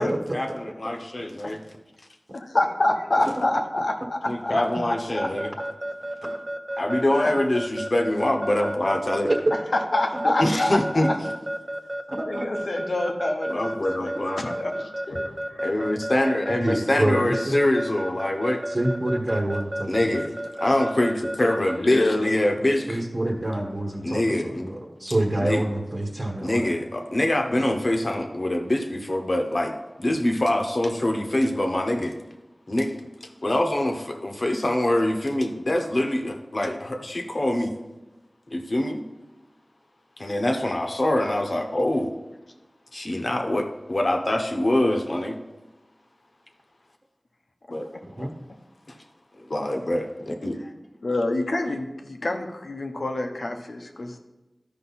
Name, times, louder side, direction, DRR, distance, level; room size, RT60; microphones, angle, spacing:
voice 1, 0.0-1.6 4.3-5.5 6.2-6.4 6.8-9.3 10.4-11.1 13.5-14.6 15.6-18.6 19.9-20.3 20.6-23.0 24.0-24.8 25.4-25.6 26.4-32.1 32.7-33.0 33.2-37.7 38.5-39.0 40.2-42.1 42.9-45.4 47.7-47.9 48.9-49.0 49.4-50.7, left 1 dB, 55° left, 4 dB, 1.1 m, -24 dB
voice 2, 2.3-5.3 7.1-7.3 9.9-11.1 12.3-15.7 17.1-17.3 21.8-22.3 48.2-48.3 51.0-54.1, left 2 dB, 80° left, 3 dB, 1.0 m, -27 dB
Keyboard (musical) / Alarm, 5.2-21.8, right 1 dB, 20° right, 0.8 m, -31 dB
voice 3, 12.1-12.5 16.6-17.6 18.7-20.1 22.9-26.7 48.2-48.3, right 1 dB, 45° right, 0 dB, 1.3 m, -27 dB
13.0 x 5.2 x 4.2 m, 1.1 s
wide cardioid pair, 45°, 0 cm